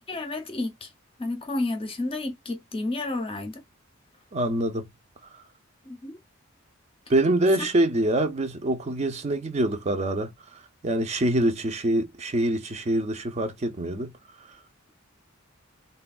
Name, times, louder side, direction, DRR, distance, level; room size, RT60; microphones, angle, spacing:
voice 1, 0.1-0.9 1.2-3.6 5.8-6.2, left 2 dB, 25° left, 0.6 m, -31 dB
voice 2, 4.3-4.9 7.1-14.1, right 1 dB, 30° right, 0.5 m, -25 dB
3.3 x 2.2 x 2.3 m
head